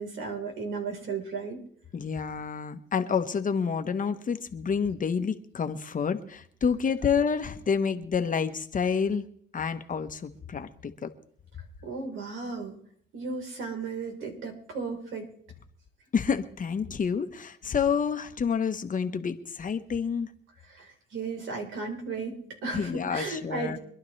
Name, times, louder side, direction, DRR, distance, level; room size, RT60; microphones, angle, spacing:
voice 1, 0.0-1.6 11.8-12.8 13.1-15.3 20.7-23.8, right 4 dB, 80° right, 2 dB, 4.1 m, -35 dB
voice 2, 1.9-9.2 9.5-11.1 16.1-20.3 22.7-23.8, left 6 dB, 40° left, 8 dB, 1.2 m, -28 dB
25.0 x 11.5 x 3.3 m, 0.63 s
cardioid pair, 90°, 20 cm